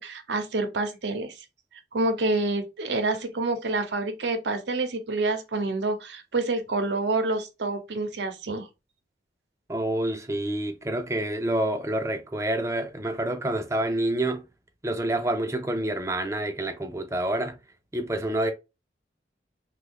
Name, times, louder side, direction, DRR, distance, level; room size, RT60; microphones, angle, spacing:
voice 1, 0.0-1.3 1.9-8.7, right 2 dB, 85° right, 0.7 m, -27 dB
voice 2, 9.7-14.5 14.8-17.6 17.9-18.5, right 1 dB, 15° right, 0.4 m, -28 dB
3.1 x 2.3 x 3.5 m
head